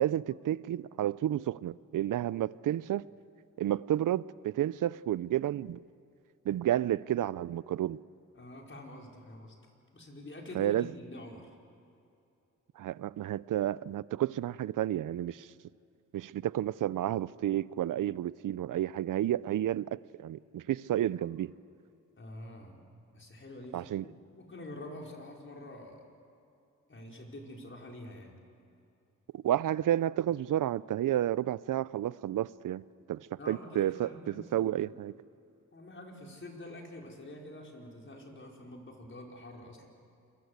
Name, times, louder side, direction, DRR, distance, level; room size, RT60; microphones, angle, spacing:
voice 1, 0.0-3.1 3.6-5.8 6.5-8.0 10.5-10.9 12.8-15.5 16.1-21.5 23.7-24.1 29.3-35.1, right 12 dB, 80° right, 0.6 m, -31 dB
voice 2, 8.3-9.5 9.9-11.5 22.1-22.9 23.1-24.1 24.3-26.0 26.9-28.4 33.4-34.9 35.7-39.9, left 1 dB, 40° left, 4.9 m, -46 dB
27.0 x 22.0 x 8.1 m
cardioid pair, 70°, 31 cm